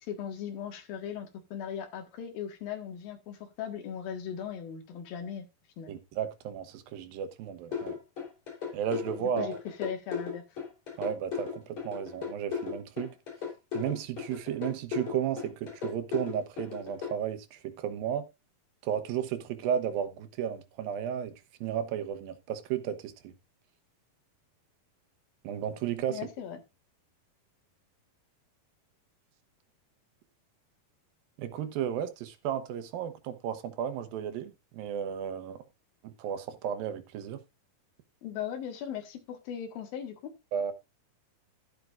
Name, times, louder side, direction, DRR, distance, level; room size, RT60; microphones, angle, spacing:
voice 1, 0.0-5.5 5.8-6.0 9.2-9.5 9.8-10.4 26.1-26.6 38.2-40.3, left 8 dB, 85° left, 3.5 m, -38 dB
voice 2, 5.9-8.0 8.7-9.6 11.0-13.2 13.7-18.3 18.8-21.3 21.6-23.3 25.4-26.2 31.4-35.6 36.0-37.4 40.5-40.7, right 9 dB, 80° right, 2.8 m, -33 dB
sound 1, 7.7-17.1, left 7 dB, 55° left, 5.2 m, -36 dB
12.0 x 11.0 x 2.5 m
omnidirectional pair, 4.1 m